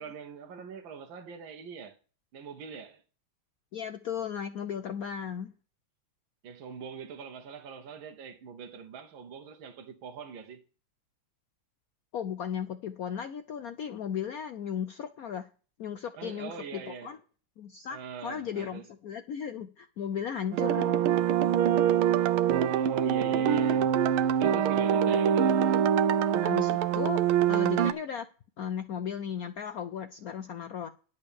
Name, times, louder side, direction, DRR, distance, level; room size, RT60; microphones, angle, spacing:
voice 1, 0.0-2.0 2.3-3.0 6.4-10.6 16.2-17.1 17.9-18.8 22.5-24.0 24.4-25.6, right 6 dB, 70° right, 1.8 m, -42 dB
voice 2, 3.7-5.5 12.1-15.5 15.8-17.2 17.6-21.0 25.1-25.2 26.4-27.2 27.5-28.3 28.6-30.9, left 8 dB, 75° left, 0.8 m, -36 dB
sound 1, 20.5-27.9, right 9 dB, 85° right, 1.5 m, -24 dB
11.0 x 5.5 x 6.9 m
omnidirectional pair, 2.3 m